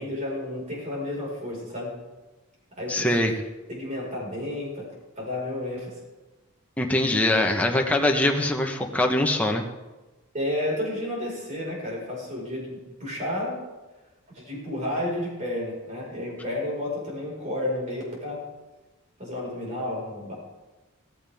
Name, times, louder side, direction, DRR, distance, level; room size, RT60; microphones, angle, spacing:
voice 1, 0.0-1.9 2.8-3.3 3.7-4.9 5.2-6.0 10.3-13.6 14.3-18.4 19.2-20.3, left 1 dB, 35° right, -3 dB, 5.0 m, -31 dB
voice 2, 2.9-3.3 6.8-9.6, left 1 dB, 5° left, 1 dB, 1.1 m, -23 dB
16.0 x 14.5 x 3.6 m, 1.2 s
head